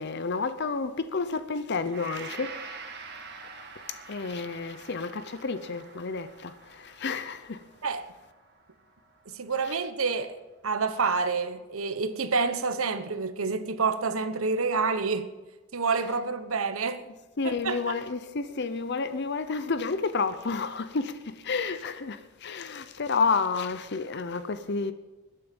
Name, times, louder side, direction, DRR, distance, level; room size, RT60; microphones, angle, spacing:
voice 1, 0.0-2.6 3.9-7.6 17.4-24.9, left 4 dB, 50° left, 0.7 m, -30 dB
Gong, 1.9-10.2 10.7-10.8, right 4 dB, 50° right, 1.9 m, -46 dB
voice 2, 9.3-10.3 10.6-15.3 15.7-17.0 17.4-18.0, right 4 dB, 75° right, 1.1 m, -28 dB
21.0 x 9.5 x 5.3 m
head